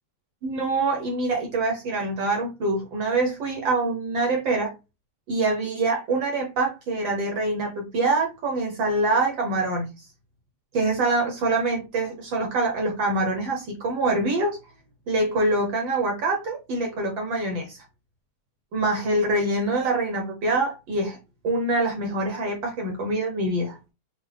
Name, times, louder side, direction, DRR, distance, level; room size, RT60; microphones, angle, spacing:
voice 1, 0.4-4.7 5.3-9.9 10.7-14.6 15.1-17.8 18.7-21.2 21.4-23.8, right 2 dB, 65° right, 1.2 m, -25 dB
6.1 x 2.3 x 3.4 m
omnidirectional pair, 3.4 m